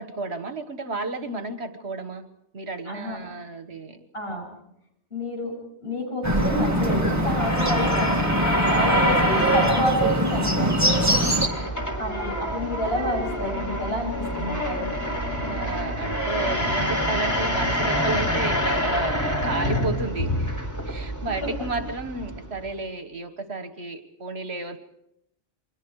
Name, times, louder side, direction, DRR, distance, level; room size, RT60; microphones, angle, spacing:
voice 1, 0.0-2.3 2.5-4.1 7.1-7.5 8.7-9.2 11.0-11.4 15.4-20.6 20.9-24.8, right 3 dB, 65° right, 9 dB, 1.7 m, -32 dB
voice 2, 2.9-3.2 4.1-4.5 5.1-5.5 5.8-10.8 12.0-14.9, left 1 dB, 55° left, 1 dB, 7.6 m, -29 dB
Bird, 6.2-11.5, right 1 dB, 15° right, 1.9 m, -23 dB
sound 1, 6.4-22.7, equal, 15° left, 3.4 m, -27 dB
28.5 x 23.0 x 4.8 m, 0.77 s
omnidirectional pair, 1.2 m